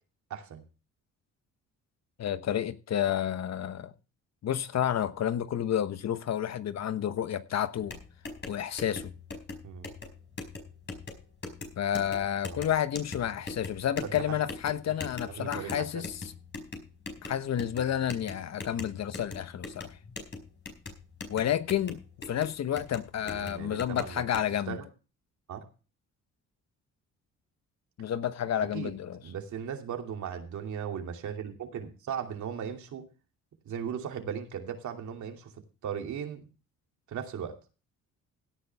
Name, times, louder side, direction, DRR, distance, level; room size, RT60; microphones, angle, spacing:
voice 1, 0.3-0.6 9.6-9.9 12.4-12.7 14.0-14.1 15.2-16.0 23.3-24.2 24.7-24.8 25.5-25.7 28.7-28.9 29.2-33.0 33.7-35.5 35.8-36.4 37.1-37.6, right 8 dB, 70° right, 2.7 m, -37 dB
voice 2, 2.2-3.9 4.4-8.0 8.5-9.1 11.8-16.3 17.2-20.0 21.3-22.0 22.3-24.8 28.0-29.2, left 10 dB, 60° left, 1.1 m, -30 dB
sound 1, 7.7-24.4, left 3 dB, 35° left, 4.7 m, -42 dB
17.0 x 9.9 x 3.5 m
cardioid pair, 90°, 30 cm